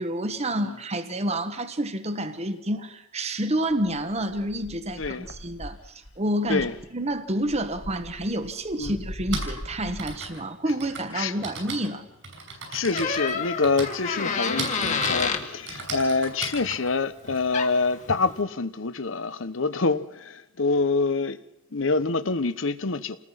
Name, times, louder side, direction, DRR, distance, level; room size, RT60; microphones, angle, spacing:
voice 1, 0.0-6.7 6.9-12.1, right 1 dB, 35° right, 1.2 m, -29 dB
sound 1, 3.7-6.2 6.5-10.3, equal, 55° left, 1.7 m, -40 dB
voice 2, 5.0-5.3 6.5-6.7 8.8-8.9 11.1-11.3 12.7-21.4 21.7-23.2, left 3 dB, 75° left, 1.0 m, -26 dB
Typing, 8.0-8.1 9.0-18.1, right 3 dB, 70° right, 5.9 m, -37 dB
Door, 12.9-15.5 17.3-17.4 17.5-17.9, left 5 dB, 40° left, 1.8 m, -28 dB
28.5 x 19.5 x 5.7 m
head